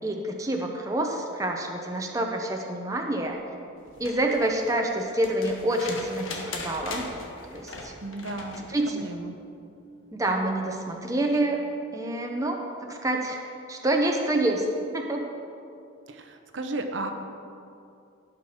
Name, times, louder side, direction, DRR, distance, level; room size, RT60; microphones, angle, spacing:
voice 1, 0.0-3.4 4.0-7.1 7.5-7.9 8.7-9.1 10.1-11.6 11.9-14.7 14.9-15.3, right 1 dB, 15° right, 1 dB, 0.8 m, -27 dB
sound 1, 3.9-8.7 10.3-10.4, left 3 dB, 80° left, 1.5 m, -39 dB
voice 2, 8.0-8.6 8.9-9.3 16.1-17.1, right 2 dB, 65° right, 6 dB, 0.9 m, -34 dB
17.0 x 6.0 x 5.0 m, 2.6 s
head